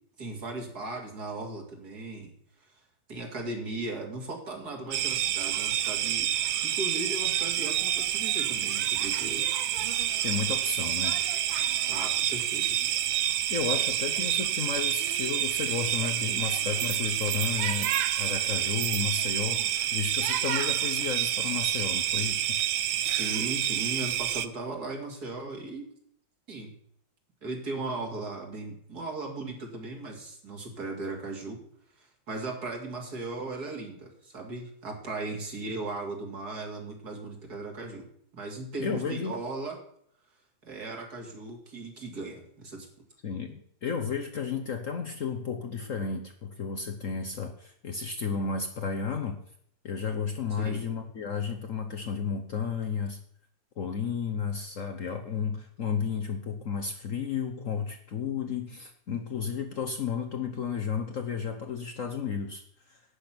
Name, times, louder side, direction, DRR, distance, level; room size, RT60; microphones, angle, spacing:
voice 1, 0.2-2.3 3.1-6.3 6.6-9.5 11.9-12.8 23.2-25.9 26.5-26.7 27.4-31.6 32.0-38.1 38.3-39.8 40.6-42.9 50.6-50.9, right 2 dB, 55° right, 1 dB, 3.0 m, -37 dB
sound 1, 4.9-24.5, right 11 dB, 80° right, 1.5 m, -28 dB
voice 2, 10.2-11.2 13.5-22.5 38.8-39.4 43.2-49.4 49.8-53.2 53.8-63.0, left 6 dB, 55° left, 5 dB, 1.1 m, -33 dB
11.5 x 8.6 x 6.0 m, 0.66 s
omnidirectional pair, 2.1 m